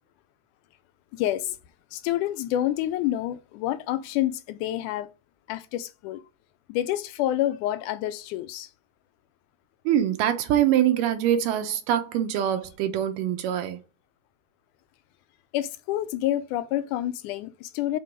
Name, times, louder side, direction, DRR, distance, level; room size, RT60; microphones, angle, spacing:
voice 1, 1.1-1.6 1.9-5.1 5.5-6.2 6.7-8.7 15.5-18.0, left 13 dB, 80° left, 2.1 m, -28 dB
voice 2, 9.9-13.8, right 10 dB, 90° right, 2.6 m, -24 dB
6.5 x 3.8 x 5.1 m
omnidirectional pair, 3.7 m